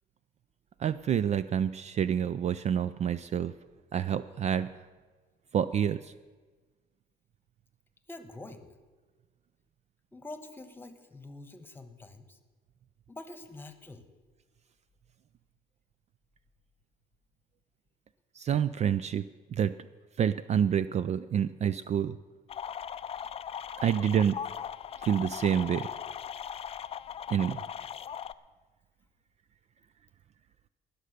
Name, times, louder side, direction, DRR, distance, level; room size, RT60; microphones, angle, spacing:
voice 1, 0.8-3.5 3.9-4.7 5.5-6.1 18.4-19.2 19.5-19.7 20.2-22.2 23.8-24.4 25.0-25.9 27.3-27.6, right 8 dB, 40° right, 14 dB, 0.4 m, -28 dB
voice 2, 8.1-8.7 10.1-12.4 13.1-14.0, left 2 dB, 10° left, 9 dB, 1.2 m, -46 dB
sound 1, 22.5-28.3, left 8 dB, 35° left, 0.4 m, -39 dB
19.0 x 6.7 x 6.7 m, 1.4 s
cardioid pair, 110°, 17 cm